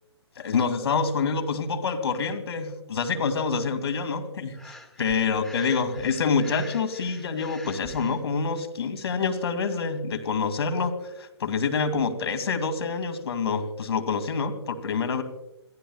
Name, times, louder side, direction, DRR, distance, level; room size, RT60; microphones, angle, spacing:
voice 1, 0.4-15.2, left 5 dB, 65° left, 7 dB, 2.4 m, -27 dB
Breathing, 4.5-8.2, left 1 dB, ahead, 1.9 m, -45 dB
28.5 x 15.0 x 2.4 m, 0.91 s
hypercardioid pair, 150°, 15 cm